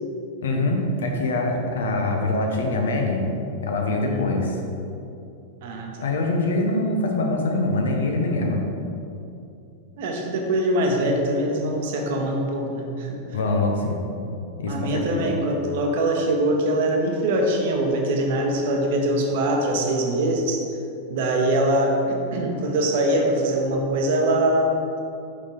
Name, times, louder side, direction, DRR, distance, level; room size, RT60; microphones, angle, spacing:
voice 1, 0.4-3.3 3.6-4.6 6.0-8.6 13.3-14.0 14.6-15.3, left 2 dB, 65° left, 1 dB, 0.9 m, -24 dB
voice 2, 5.6-6.1 10.0-13.2 14.7-20.6 21.1-24.8, right 1 dB, 50° right, 2 dB, 1.0 m, -23 dB
6.2 x 5.9 x 3.9 m, 2.7 s
figure-of-eight pair, 90°, 0 cm